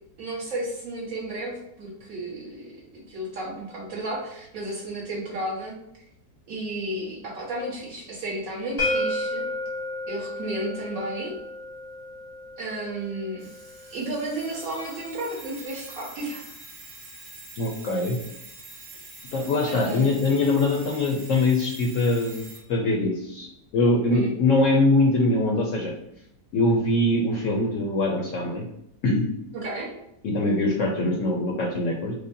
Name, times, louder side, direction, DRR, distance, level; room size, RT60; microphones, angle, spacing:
voice 1, 0.2-2.7 2.9-5.7 6.5-9.4 10.1-11.3 12.6-13.4 13.9-16.4 19.7-20.1 24.0-24.4 29.5-29.9, right 1 dB, 60° right, -5 dB, 1.6 m, -32 dB
sound 1, 8.8-14.6, left 1 dB, 20° left, 0.6 m, -32 dB
Alarm, 13.4-22.7, right 2 dB, 85° right, 1.9 m, -45 dB
voice 2, 17.6-18.2 19.3-23.5 23.7-25.9 26.5-28.7 29.0-29.3 30.2-32.1, left 2 dB, 70° left, 0 dB, 0.8 m, -23 dB
4.9 x 2.1 x 2.6 m, 0.80 s
omnidirectional pair, 1.7 m